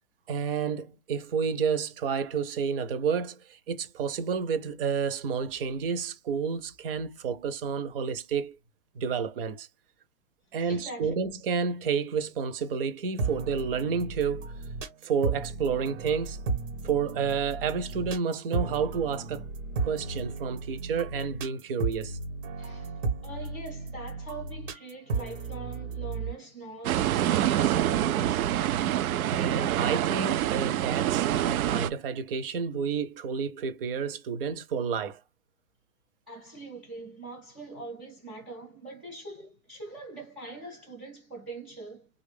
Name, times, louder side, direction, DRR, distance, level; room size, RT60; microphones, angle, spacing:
voice 1, 0.3-8.6 8.9-9.7 10.5-14.5 15.0-16.4 16.8-19.4 19.8-22.2 29.3-35.2, right 6 dB, 40° right, 0.7 m, -30 dB
voice 2, 10.6-11.1 22.6-28.6 36.3-42.1, right 2 dB, 5° right, 0.3 m, -43 dB
sound 1, 13.2-26.3, right 4 dB, 60° right, 1.5 m, -34 dB
sound 2, 26.8-31.9, right 12 dB, 80° right, 0.6 m, -26 dB
3.1 x 2.5 x 3.4 m
hypercardioid pair, 155°, 42 cm